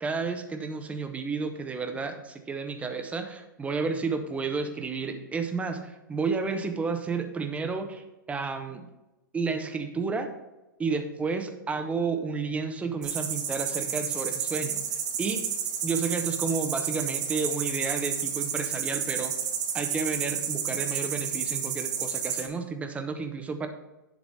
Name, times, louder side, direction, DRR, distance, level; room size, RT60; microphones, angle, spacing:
voice 1, 0.0-8.9 9.3-10.3 10.8-14.9 15.2-15.4 15.8-19.3 19.7-23.7, right 4 dB, 10° right, 6 dB, 0.9 m, -31 dB
sound 1, 13.0-22.5, right 8 dB, 55° right, 1.5 m, -31 dB
10.5 x 3.9 x 4.9 m, 1.0 s
hypercardioid pair, 115°, 11 cm